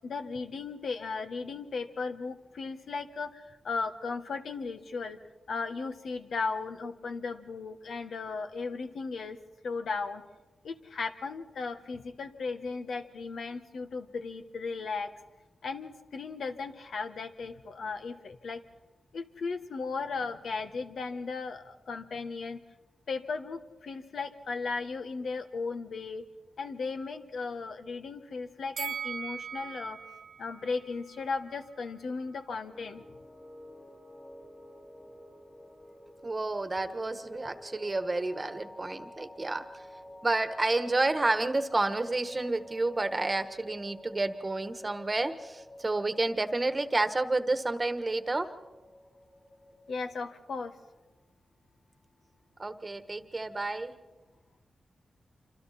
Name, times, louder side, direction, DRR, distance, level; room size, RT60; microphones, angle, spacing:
voice 1, 0.0-5.2 5.5-9.4 9.6-10.2 10.6-15.1 15.6-18.6 19.1-22.6 23.1-26.2 26.6-30.0 30.4-33.0 49.9-50.7, left 4 dB, 80° left, 7 dB, 1.4 m, -36 dB
Bell, 28.8-31.9 32.3-32.4, right 7 dB, 85° right, 0.7 m, -41 dB
sound 1, 32.7-50.0, left 1 dB, 25° left, 3.1 m, -51 dB
voice 2, 36.2-39.6 40.2-48.5 52.6-53.9, right 2 dB, 25° right, 10 dB, 1.3 m, -30 dB
27.0 x 26.0 x 4.3 m, 1.1 s
wide cardioid pair, 95°, 0 cm